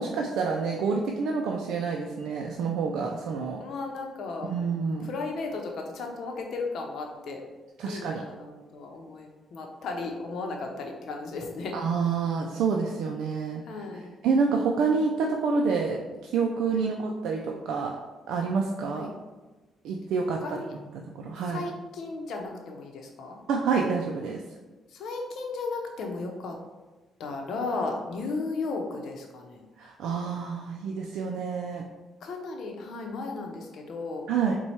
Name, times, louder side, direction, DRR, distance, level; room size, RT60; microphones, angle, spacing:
voice 1, 0.0-3.6 4.5-5.1 7.8-8.3 11.7-13.6 14.2-17.9 18.3-19.1 19.8-20.4 21.2-21.6 23.5-24.4 29.8-31.8 34.3-34.5, right 5 dB, 80° right, 1 dB, 0.4 m, -28 dB
voice 2, 3.6-4.5 5.0-7.4 7.8-11.7 13.7-14.1 16.7-16.9 18.9-19.1 20.4-20.7 21.5-23.4 24.9-26.6 27.2-29.6 32.2-34.2, left 3 dB, 70° left, 2 dB, 0.7 m, -35 dB
4.4 x 2.3 x 4.2 m, 1.2 s
cardioid pair, 90°, 0 cm